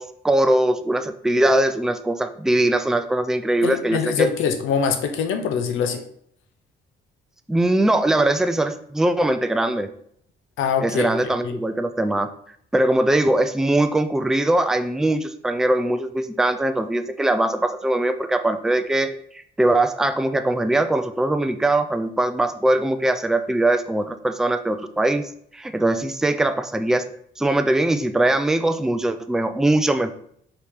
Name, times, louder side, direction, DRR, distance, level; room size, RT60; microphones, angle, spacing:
voice 1, 0.0-4.3 7.5-9.9 10.8-12.3 12.7-27.1 27.4-30.1, right 1 dB, 5° right, 8 dB, 0.3 m, -21 dB
voice 2, 3.6-6.0 10.6-11.5, left 6 dB, 80° left, 6 dB, 0.6 m, -24 dB
4.7 x 2.9 x 3.4 m, 0.66 s
cardioid pair, 90°, 20 cm